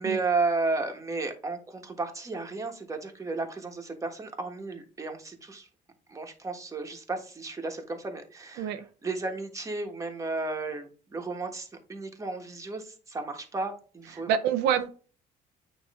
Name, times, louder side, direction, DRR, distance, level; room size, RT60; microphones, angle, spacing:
voice 1, 0.0-5.7 6.1-8.8 9.0-14.3, right 3 dB, 20° right, 4 dB, 1.4 m, -33 dB
voice 2, 14.3-14.9, right 9 dB, 90° right, 8 dB, 0.7 m, -26 dB
8.9 x 3.1 x 3.6 m, 0.37 s
cardioid pair, 110°, 17 cm